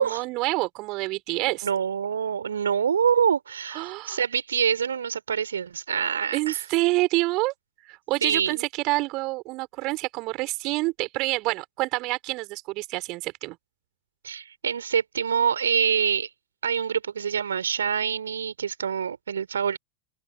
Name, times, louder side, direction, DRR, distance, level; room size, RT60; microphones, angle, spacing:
voice 1, 0.0-1.7 3.7-4.2 6.3-7.5 7.9-13.6, right 22 dB, 40° right, 4.9 m, -27 dB
voice 2, 1.6-6.6 8.2-8.7 14.2-16.3 16.6-19.8, right 7 dB, 70° right, 4.0 m, -25 dB
open air
figure-of-eight pair, 90°, 0 cm